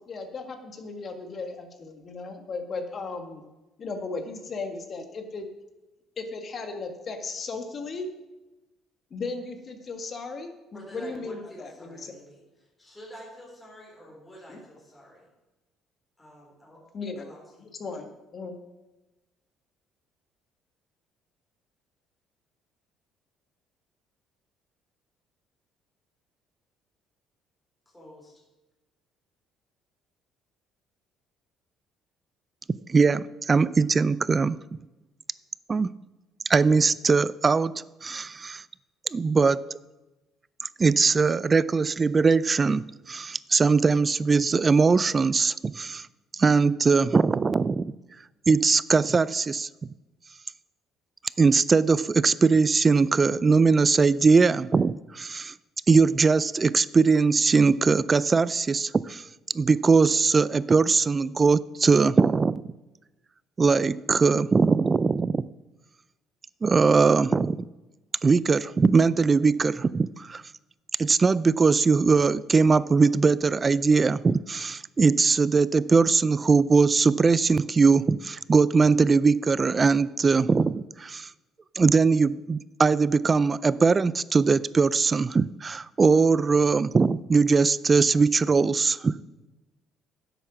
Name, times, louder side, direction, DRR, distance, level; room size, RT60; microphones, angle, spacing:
voice 1, 0.0-3.4 3.8-5.5 6.2-8.1 9.1-12.1 14.5-14.6 16.9-17.3 17.6-18.6, left 3 dB, 45° left, 6 dB, 1.7 m, -36 dB
voice 2, 10.7-15.3 16.2-16.8 17.2-17.7 27.9-28.3, equal, 15° left, -4 dB, 4.4 m, -48 dB
voice 3, 32.9-34.6 35.7-35.9 36.5-37.7 38.0-38.6 39.1-39.6 40.8-46.1 46.4-47.9 48.5-49.7 51.4-55.5 55.9-59.2 59.5-62.6 63.6-65.4 66.6-67.6 68.2-70.4 71.0-81.3 81.8-89.1, right 4 dB, 30° right, 19 dB, 0.4 m, -21 dB
10.0 x 8.1 x 6.1 m, 1.1 s
cardioid pair, 95°, 0 cm